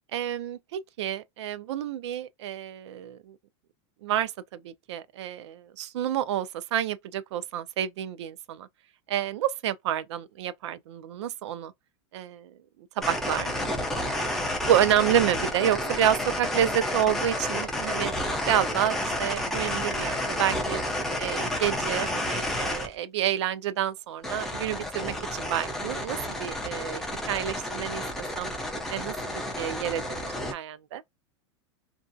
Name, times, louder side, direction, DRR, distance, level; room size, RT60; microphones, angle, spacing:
voice 1, 0.1-3.4 4.0-8.7 9.1-11.7 12.1-12.6 13.0-13.7 14.6-18.1 18.4-20.8 21.2-28.0 28.4-28.5 28.9-31.0, right 11 dB, 75° right, 0.4 m, -29 dB
sound 1, 13.0-22.9 24.2-30.5, left 1 dB, ahead, 0.3 m, -30 dB
2.6 x 2.3 x 2.5 m
supercardioid pair, 180°, 15 cm